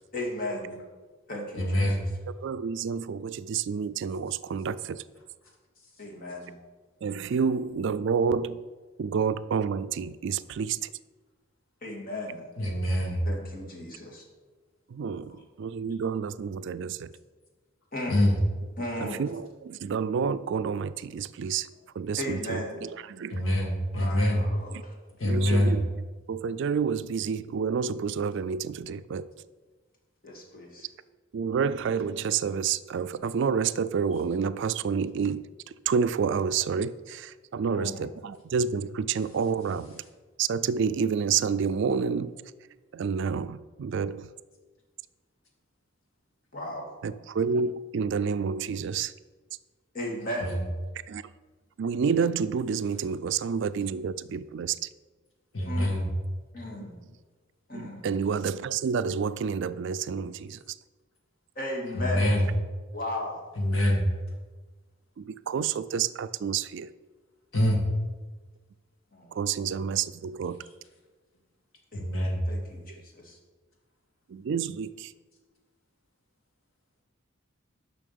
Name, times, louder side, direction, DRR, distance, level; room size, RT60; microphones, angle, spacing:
voice 1, 0.1-0.8 1.3-2.0 6.0-6.6 11.8-12.4 13.2-14.2 15.3-15.4 17.9-18.3 18.8-19.3 22.2-22.8 23.9-25.0 30.2-30.9 37.7-38.1 46.5-46.9 49.9-50.6 55.6-56.0 56.5-57.0 57.7-58.1 61.6-62.4 62.9-63.4 69.1-69.4 71.9-73.4, left 1 dB, 45° left, 0 dB, 2.0 m, -36 dB
voice 2, 1.6-2.0 12.6-13.2 18.1-18.3 23.3-23.7 24.1-24.3 25.2-25.8 50.4-50.5 55.5-56.0 62.0-62.4 63.6-64.0 67.5-67.8 72.0-72.4, left 1 dB, 90° left, 0 dB, 2.1 m, -24 dB
voice 3, 2.4-5.0 7.0-8.6 9.0-10.9 14.9-17.1 19.0-21.7 22.0-23.3 25.2-26.0 26.3-29.3 31.3-35.4 35.9-40.0 40.4-42.3 42.9-44.3 47.0-49.1 51.1-51.2 51.8-54.8 57.7-60.6 65.2-66.9 69.3-70.6 74.3-75.1, right 6 dB, 60° right, 14 dB, 0.3 m, -29 dB
7.1 x 5.8 x 6.8 m, 1.3 s
head